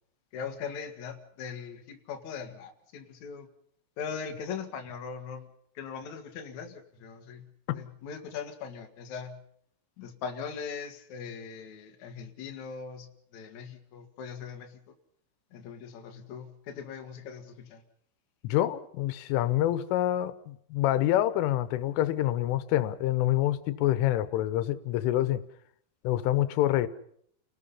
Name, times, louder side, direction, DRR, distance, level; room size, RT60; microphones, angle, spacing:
voice 1, 0.3-3.5 4.0-5.5 5.7-7.4 7.7-9.4 10.0-13.1 13.3-14.8 15.5-17.8, left 6 dB, 50° left, 3 dB, 2.7 m, -40 dB
voice 2, 18.4-25.4 26.1-26.9, left 13 dB, 90° left, 14 dB, 3.6 m, -26 dB
30.0 x 19.0 x 5.6 m, 0.67 s
omnidirectional pair, 5.5 m